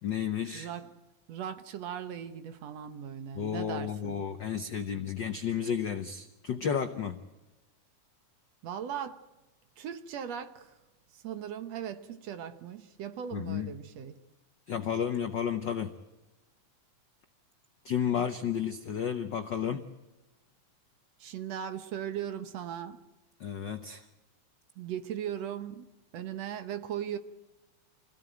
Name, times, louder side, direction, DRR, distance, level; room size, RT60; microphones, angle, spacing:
voice 1, 0.0-0.7 3.3-7.2 13.3-13.7 14.7-15.9 17.8-19.9 23.4-24.1, left 8 dB, 90° left, 1.0 m, -32 dB
voice 2, 0.5-0.9 1.3-4.3 8.6-9.2 9.8-10.8 11.1-14.2 21.2-23.0 24.8-25.9 26.1-27.2, right 9 dB, 65° right, 2.1 m, -38 dB
26.0 x 16.5 x 9.1 m
omnidirectional pair, 3.5 m